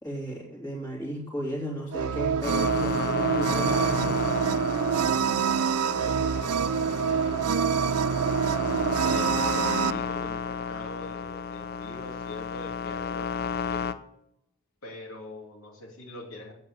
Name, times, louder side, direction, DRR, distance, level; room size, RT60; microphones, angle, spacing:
voice 1, 0.0-4.3, equal, 15° left, -5 dB, 2.8 m, -34 dB
sound 1, 1.9-9.9, right 7 dB, 90° right, 0.4 m, -26 dB
sound 2, 2.4-13.9, left 6 dB, 45° left, 0.6 m, -33 dB
voice 2, 5.8-8.2 8.7-13.9 14.8-16.5, left 1 dB, 70° left, -3 dB, 2.8 m, -43 dB
8.6 x 8.0 x 6.8 m, 0.78 s
head